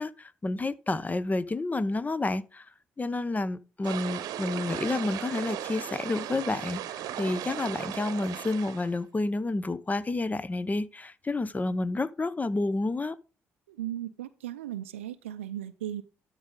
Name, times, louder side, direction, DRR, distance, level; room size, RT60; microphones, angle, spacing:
voice 1, 0.0-2.7 3.0-13.2, left 2 dB, 25° left, 0.8 m, -30 dB
sound 1, 3.8-9.0, right 11 dB, 70° right, 0.9 m, -37 dB
voice 2, 13.7-16.0, right 12 dB, 90° right, 0.4 m, -36 dB
12.5 x 4.8 x 3.8 m
hypercardioid pair, 50°, 7 cm